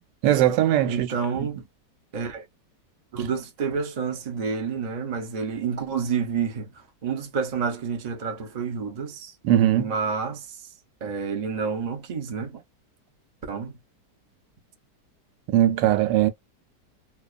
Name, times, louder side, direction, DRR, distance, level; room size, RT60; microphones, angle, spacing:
voice 1, 0.2-1.1 9.4-9.9 15.5-16.3, right 12 dB, 85° right, 1.2 m, -20 dB
voice 2, 0.9-1.6 2.1-2.4 3.1-6.7 7.0-9.3 9.8-10.5 11.0-12.6 13.5-13.8, right 6 dB, 60° right, 0.4 m, -29 dB
2.6 x 2.3 x 2.3 m
omnidirectional pair, 1.8 m